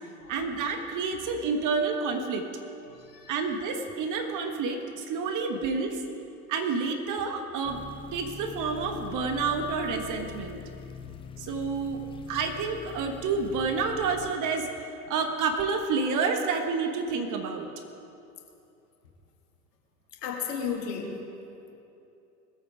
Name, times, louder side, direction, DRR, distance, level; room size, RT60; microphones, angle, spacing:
voice 1, 0.3-2.5 3.3-6.0 6.5-7.8 8.1-10.6 11.4-12.0 12.3-14.7 15.1-17.7, right 4 dB, 40° right, 5 dB, 1.4 m, -29 dB
voice 2, 2.9-3.3 20.2-21.3, left 6 dB, 75° left, 1 dB, 2.0 m, -34 dB
sound 1, 7.6-14.3, left 8 dB, 10° left, 0.3 m, -43 dB
20.5 x 8.7 x 4.9 m, 2.7 s
hypercardioid pair, 85°, 48 cm